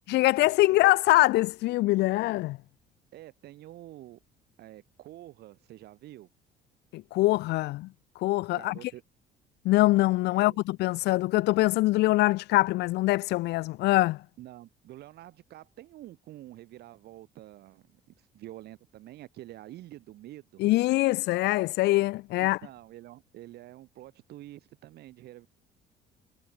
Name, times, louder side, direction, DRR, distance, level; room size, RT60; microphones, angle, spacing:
voice 1, 0.1-2.6 6.9-7.9 8.2-8.9 9.6-14.2 20.6-22.6, left 19 dB, 85° left, 1.3 m, -24 dB
voice 2, 3.1-4.2 4.6-6.3 8.5-9.0 10.3-10.6 14.4-18.0 18.3-20.6 22.4-25.5, right 15 dB, 75° right, 4.7 m, -47 dB
cardioid pair, 110°, 17 cm